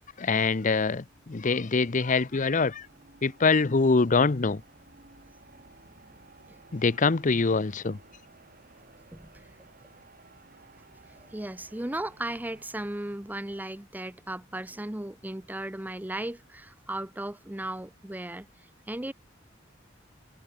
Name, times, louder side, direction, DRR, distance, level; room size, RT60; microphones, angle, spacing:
voice 1, 0.2-2.9 3.2-4.6 6.7-8.0, left 4 dB, 40° left, 0.7 m, -24 dB
sound 1, 0.7-13.9, right 2 dB, 50° right, 4.6 m, -56 dB
voice 2, 9.1-9.4 11.2-18.5 18.9-19.1, right 1 dB, 10° right, 0.7 m, -36 dB
head